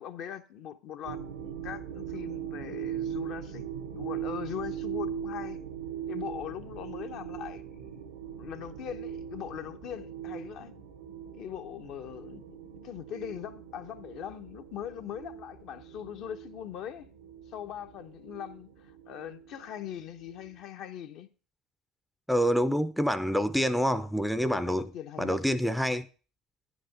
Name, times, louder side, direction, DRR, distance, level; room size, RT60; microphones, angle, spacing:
voice 1, 0.0-5.6 6.1-8.0 8.4-10.7 11.3-17.1 17.5-21.3 24.4-25.4, left 10 dB, 60° left, 1.0 m, -41 dB
sound 1, 1.0-20.5, right 9 dB, 85° right, 1.4 m, -40 dB
voice 2, 22.3-24.9 25.2-26.1, equal, ahead, 0.6 m, -27 dB
10.0 x 5.1 x 6.6 m
hypercardioid pair, 75°, 0 cm